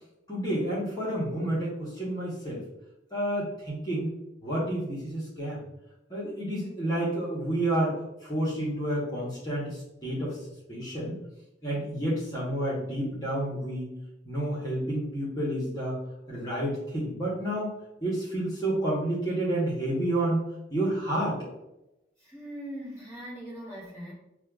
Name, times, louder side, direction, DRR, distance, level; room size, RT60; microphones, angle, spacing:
voice 1, 0.3-2.6 3.1-4.1 4.4-5.6 6.1-11.2 11.6-14.0 14.2-16.0 16.3-17.7 18.0-20.4 20.7-21.4, right 1 dB, 20° left, -6 dB, 1.0 m, -30 dB
voice 2, 22.2-24.1, equal, 15° right, -7 dB, 1.2 m, -40 dB
6.4 x 2.3 x 2.3 m, 0.91 s
head